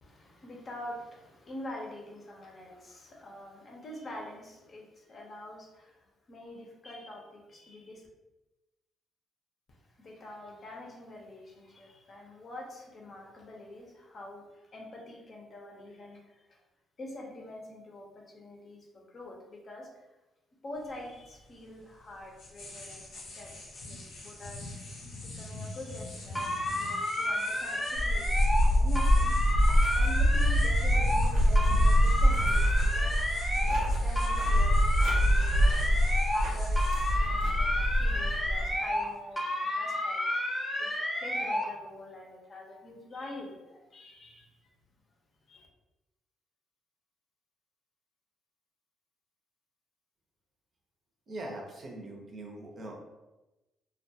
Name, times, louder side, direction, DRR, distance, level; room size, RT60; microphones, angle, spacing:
voice 1, 0.0-8.1 9.7-16.6 17.0-20.0 20.6-24.6 25.2-29.6 29.9-33.3 33.6-36.0 36.3-40.2 40.8-40.9 41.2-44.5 45.5-45.7, left 1 dB, 45° left, -1 dB, 0.6 m, -46 dB
sound 1, 20.7-39.2, left 2 dB, 85° left, 0.6 m, -46 dB
sound 2, 26.4-28.7 29.0-31.3 31.6-33.9 34.2-36.5 36.8-39.1 39.4-41.7, left 1 dB, 5° left, 0.8 m, -31 dB
sound 3, 28.0-38.8, equal, 90° right, 0.7 m, -25 dB
voice 2, 51.3-53.0, right 1 dB, 45° right, 0 dB, 0.6 m, -41 dB
2.3 x 2.2 x 2.7 m, 1.0 s
cardioid pair, 90°, 0 cm